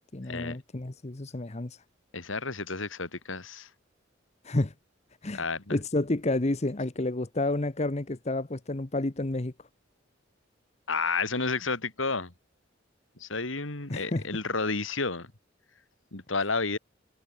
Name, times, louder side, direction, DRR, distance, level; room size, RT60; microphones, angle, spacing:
voice 1, 0.1-1.8 4.4-4.7 5.2-5.5 5.7-9.5 13.9-14.3, left 2 dB, 35° left, 1.0 m, -30 dB
voice 2, 2.1-3.7 5.3-5.8 10.9-12.3 13.2-15.3 16.1-16.8, left 4 dB, 90° left, 3.1 m, -31 dB
head